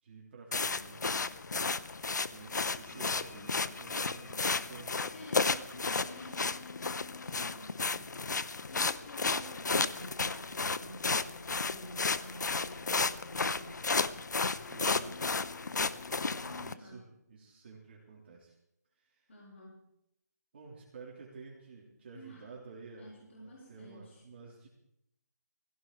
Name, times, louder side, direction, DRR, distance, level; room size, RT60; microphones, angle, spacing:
voice 1, 0.0-1.2 1.5-1.9 2.3-6.1 14.6-15.1 16.3-18.5 19.0-19.2 20.5-24.7, right 4 dB, 35° right, -4 dB, 3.4 m, -52 dB
sound 1, 0.5-16.7, left 4 dB, 90° left, 0.9 m, -33 dB
voice 2, 2.9-3.6 5.1-8.2 8.7-13.9 14.7-15.2 16.7-17.1 19.3-19.9 22.1-22.5 23.0-24.2, equal, 50° left, -4 dB, 4.4 m, -50 dB
17.5 x 16.0 x 4.7 m, 0.79 s
hypercardioid pair, 170°, 9 cm